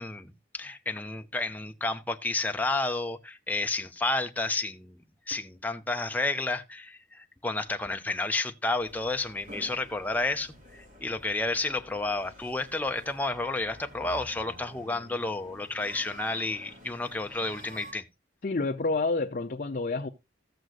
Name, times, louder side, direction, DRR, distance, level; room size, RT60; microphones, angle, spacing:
voice 1, 0.0-5.0 5.3-18.0, left 2 dB, 10° left, 0.6 m, -31 dB
sound 1, 8.8-17.9, left 1 dB, 40° right, 3.4 m, -49 dB
voice 2, 18.4-20.1, left 3 dB, 45° left, 0.6 m, -28 dB
14.0 x 7.8 x 2.4 m
head